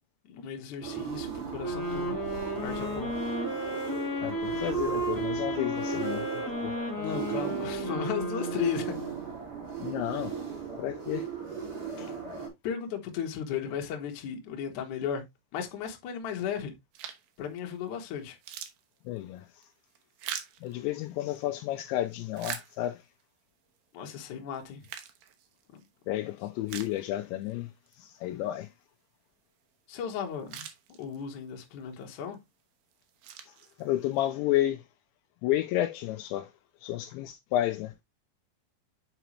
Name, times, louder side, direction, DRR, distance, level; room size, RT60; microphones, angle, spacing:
voice 1, 0.3-2.2 2.5-3.1 6.9-8.9 12.6-15.2 15.5-16.7 17.4-18.4 23.9-24.9 25.7-25.8 29.9-30.7 31.0-32.4, left 8 dB, 65° left, 2.0 m, -35 dB
sound 1, 0.8-12.5, right 7 dB, 50° right, 4.2 m, -37 dB
sound 2, 1.6-9.3, right 1 dB, 25° left, 0.4 m, -33 dB
voice 2, 4.2-6.8 9.8-10.4 10.8-11.3 12.0-12.2 19.1-19.7 20.6-23.1 26.1-28.7 33.5-34.9 35.4-36.5 36.8-37.9, left 14 dB, 85° left, 2.6 m, -32 dB
sound 3, 16.9-17.4 17.9-18.0 18.3-21.4 22.0-23.2 23.8-23.9 24.5-25.9 26.3-26.4 26.7-27.5 27.9-28.0 30.0-30.1 30.3-31.4 32.0-32.4 32.9-34.2, right 9 dB, 90° right, 1.9 m, -43 dB
7.9 x 5.0 x 3.0 m
omnidirectional pair, 5.4 m